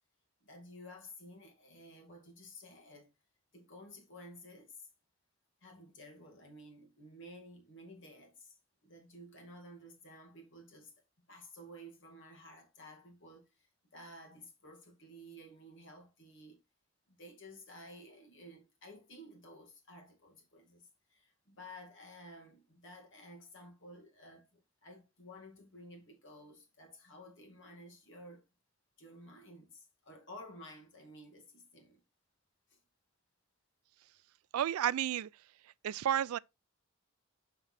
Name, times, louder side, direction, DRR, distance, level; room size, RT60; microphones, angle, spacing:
voice 1, 0.4-3.1 3.5-4.9 5.6-10.9 11.3-16.6 17.1-28.5 29.0-32.0 32.7-32.8, left 1 dB, 60° left, 2.1 m, -53 dB
voice 2, 34.5-35.3 35.8-36.4, right 10 dB, 85° right, 0.3 m, -31 dB
6.0 x 5.4 x 4.1 m
head